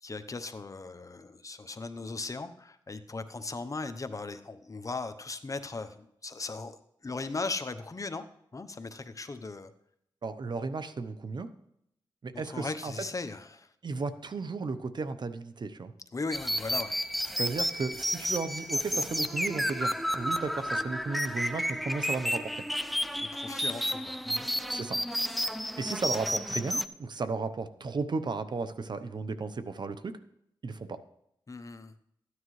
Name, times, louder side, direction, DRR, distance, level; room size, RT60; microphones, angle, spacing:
voice 1, 0.0-6.8 7.0-8.2 8.5-9.7 12.3-13.7 16.1-17.0 23.3-24.5 31.5-31.9, left 3 dB, 40° left, 10 dB, 0.8 m, -38 dB
voice 2, 10.2-11.5 12.2-12.9 13.8-15.9 17.4-22.6 24.7-25.0 25.8-30.2 30.6-31.0, right 4 dB, 60° right, 11 dB, 0.8 m, -34 dB
sound 1, 16.3-26.8, equal, ahead, 0.5 m, -31 dB
13.5 x 9.6 x 3.2 m, 0.75 s
cardioid pair, 65°, 9 cm